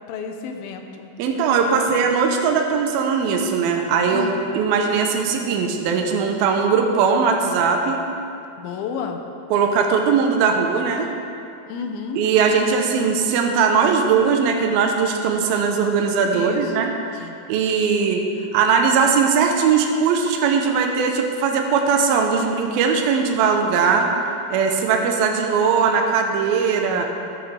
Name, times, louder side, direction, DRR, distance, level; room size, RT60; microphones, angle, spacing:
voice 1, 0.1-1.1 1.7-2.0 4.1-4.4 8.6-9.2 11.7-12.2 16.3-16.7 17.2-17.4 26.8-27.0, left 6 dB, 75° left, 4 dB, 2.5 m, -31 dB
voice 2, 1.2-4.3 4.5-8.0 9.5-11.1 12.2-16.9 17.2-18.2 18.5-24.1 24.5-27.0, right 5 dB, 75° right, 2 dB, 2.4 m, -19 dB
17.5 x 8.0 x 3.3 m, 2.6 s
omnidirectional pair, 4.7 m